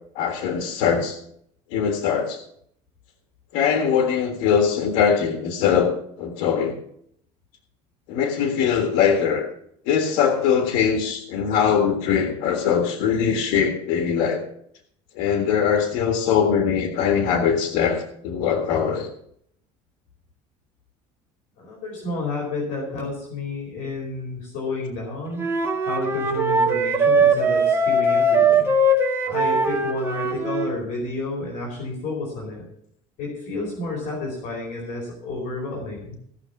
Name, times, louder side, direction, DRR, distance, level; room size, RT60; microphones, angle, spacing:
voice 1, 0.1-1.2 1.7-2.4 3.5-5.9 6.2-6.8 8.1-9.5 9.9-14.4 15.2-19.1, left 7 dB, 85° left, 4 dB, 1.7 m, -21 dB
voice 2, 21.6-25.5 25.8-28.7 29.2-32.6 33.2-36.2, left 3 dB, 60° left, -2 dB, 4.7 m, -31 dB
Wind instrument woodwind instrument, 25.4-30.7, right 2 dB, 20° right, 1.8 m, -20 dB
17.5 x 6.3 x 7.1 m, 0.69 s
cardioid pair, 145°, 14 cm